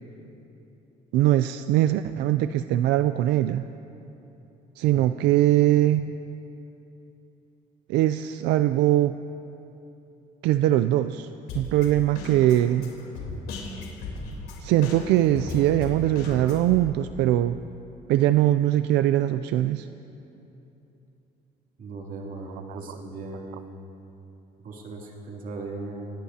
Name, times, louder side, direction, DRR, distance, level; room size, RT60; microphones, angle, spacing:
voice 1, 1.1-3.7 4.8-6.2 7.9-9.2 10.4-11.3 11.5-12.9 14.6-17.6 18.1-19.9 22.7-22.8, right 13 dB, 85° right, 11 dB, 0.4 m, -21 dB
Drum kit, 11.5-16.8, left 3 dB, 85° left, 3.5 m, -36 dB
voice 2, 21.8-23.6 24.6-26.1, right 3 dB, 55° right, -1 dB, 2.9 m, -37 dB
26.5 x 18.0 x 2.9 m, 3.0 s
cardioid pair, 110°, 17 cm